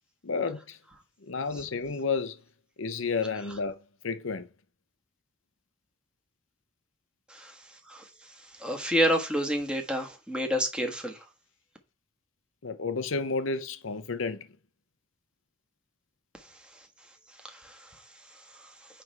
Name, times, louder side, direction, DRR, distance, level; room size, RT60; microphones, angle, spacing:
voice 1, 0.2-0.8 1.3-2.4 2.8-3.8 4.0-4.5 12.6-14.5, left 4 dB, 70° left, 0.7 m, -31 dB
voice 2, 8.6-11.2 17.4-17.8, equal, 5° right, 1.5 m, -28 dB
9.6 x 3.4 x 4.6 m
head